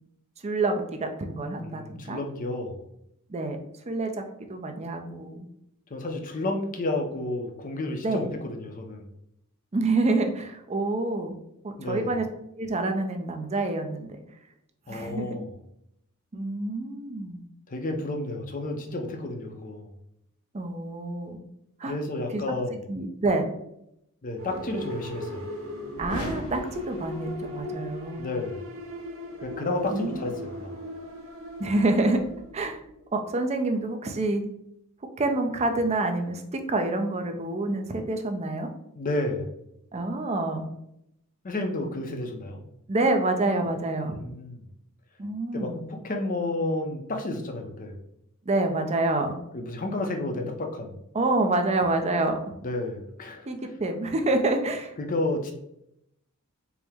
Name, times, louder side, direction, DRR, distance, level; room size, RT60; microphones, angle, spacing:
voice 1, 0.4-2.2 3.3-3.6 3.9-4.1 4.5-5.5 8.0-8.3 9.7-11.4 11.6-12.3 12.6-14.1 14.9-15.3 16.3-17.4 20.5-21.4 21.8-21.9 22.3-22.4 22.9-23.5 26.0-28.3 29.9-30.3 31.6-32.2 32.5-32.8 33.1-34.4 35.2-38.7 39.9-40.7 42.9-44.2 45.2-45.9 48.5-49.4 51.1-52.6 53.5-54.9, right 2 dB, 30° right, 5 dB, 0.4 m, -27 dB
voice 2, 1.6-2.8 5.9-9.1 11.8-12.1 14.9-15.5 17.7-19.9 21.9-22.8 24.2-25.5 28.2-28.6 29.4-30.8 39.0-39.5 41.4-42.6 44.0-44.6 45.5-48.0 49.5-51.0 52.6-53.5 55.0-55.5, left 2 dB, 40° left, 3 dB, 0.5 m, -31 dB
sound 1, 24.4-33.1, left 1 dB, 65° right, 0.8 m, -38 dB
sound 2, 25.9-27.9, left 2 dB, 80° left, 0.6 m, -38 dB
4.6 x 2.0 x 3.4 m, 0.78 s
head